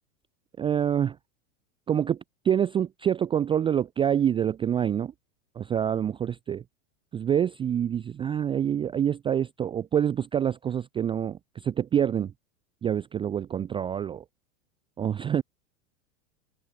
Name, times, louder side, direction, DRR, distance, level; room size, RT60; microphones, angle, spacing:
voice 1, 0.6-1.2 1.9-2.2 2.4-5.1 5.6-6.6 7.1-12.3 12.8-14.2 15.0-15.4, right 9 dB, 15° right, 0.4 m, -26 dB
open air
hypercardioid pair, 115°, 41 cm